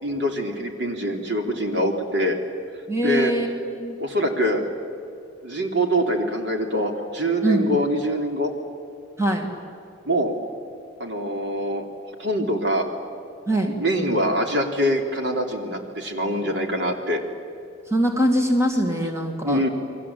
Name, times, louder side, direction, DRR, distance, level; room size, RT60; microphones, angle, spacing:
voice 1, 0.0-2.4 3.0-3.3 4.0-4.6 5.4-8.5 10.0-10.3 11.0-11.8 12.2-12.9 13.6-17.2 19.4-19.7, equal, 60° right, 4 dB, 3.3 m, -24 dB
voice 2, 2.9-3.5 3.8-3.9 7.4-7.8 9.2-9.5 13.5-13.7 17.9-19.7, right 1 dB, 15° right, 3 dB, 2.4 m, -22 dB
30.0 x 22.5 x 8.6 m, 2.5 s
head